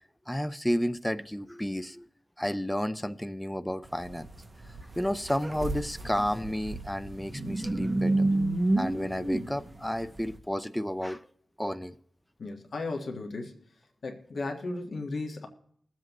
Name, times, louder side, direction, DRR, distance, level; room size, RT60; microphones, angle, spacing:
voice 1, 0.3-2.1 2.4-4.3 5.0-8.3 8.8-11.3 11.6-12.0, equal, 5° left, 12 dB, 0.4 m, -31 dB
sound 1, 3.8-10.3, right 2 dB, 25° right, 1.0 m, -30 dB
voice 2, 12.4-13.5 14.0-15.5, left 3 dB, 65° left, 3 dB, 1.4 m, -35 dB
22.0 x 7.6 x 3.0 m, 0.65 s
wide cardioid pair, 165°, 0 cm